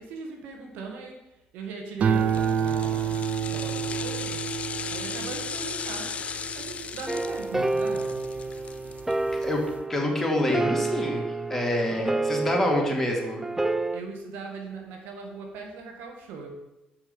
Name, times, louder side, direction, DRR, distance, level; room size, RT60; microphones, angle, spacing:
voice 1, 0.0-4.5 4.9-8.3 13.9-16.5, right 4 dB, 80° right, 2 dB, 1.9 m, -40 dB
sound 1, 2.0-8.5 9.0-9.5, right 7 dB, 55° right, 0.7 m, -29 dB
sound 2, 2.1-9.4 9.8-9.9, left 6 dB, 45° left, 0.6 m, -36 dB
sound 3, 7.1-14.0, right 2 dB, 10° right, 0.4 m, -29 dB
voice 2, 9.9-13.4, left 1 dB, 10° left, -1 dB, 2.9 m, -26 dB
7.4 x 5.8 x 7.0 m, 0.96 s
supercardioid pair, 75°, 3 cm